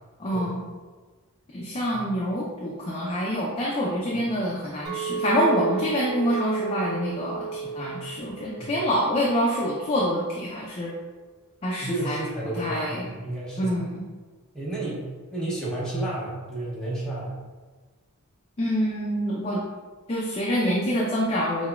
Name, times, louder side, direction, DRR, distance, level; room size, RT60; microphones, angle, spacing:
voice 1, 0.2-0.6 1.5-10.9 11.6-12.2 12.6-13.1 13.6-14.0 18.6-19.6 20.1-21.7, equal, 25° left, -4 dB, 0.4 m, -26 dB
Chink clink, 4.8-9.2 9.5-10.0, right 5 dB, 55° right, 0.9 m, -32 dB
voice 2, 11.8-13.9 14.5-17.3, right 2 dB, 5° left, -7 dB, 0.9 m, -32 dB
5.4 x 2.2 x 2.2 m, 1.4 s
head